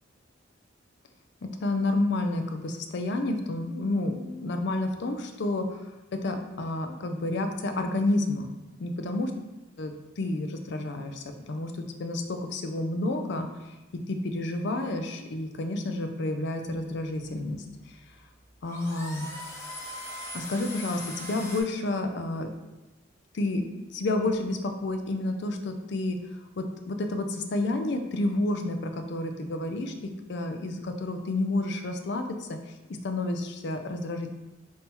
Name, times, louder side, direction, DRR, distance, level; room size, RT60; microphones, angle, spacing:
voice 1, 1.4-8.5 8.8-9.3 9.8-18.0 18.6-19.3 20.3-22.5 23.3-23.6 23.9-26.2 26.6-34.3, left 2 dB, 55° left, 6 dB, 0.4 m, -30 dB
sound 1, 16.9-21.6, left 1 dB, 15° left, 0.8 m, -40 dB
4.3 x 2.7 x 3.6 m, 1.0 s
head